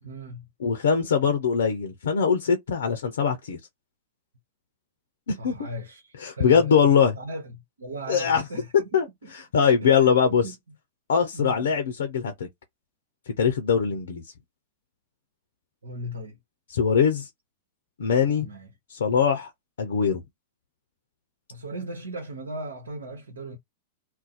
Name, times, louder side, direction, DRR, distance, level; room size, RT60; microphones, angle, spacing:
voice 1, 0.0-0.5 5.4-9.3 9.8-10.5 11.3-11.7 15.8-16.4 18.4-18.7 21.5-23.6, right 1 dB, 85° right, 1.0 m, -38 dB
voice 2, 0.6-3.6 5.3-5.6 6.2-7.2 8.1-8.4 8.9-10.4 11.1-12.5 13.4-14.2 16.7-17.3 18.0-18.5 18.9-19.5 19.8-20.2, left 6 dB, 75° left, 0.6 m, -22 dB
2.6 x 2.2 x 4.0 m
hypercardioid pair, 105°, 0 cm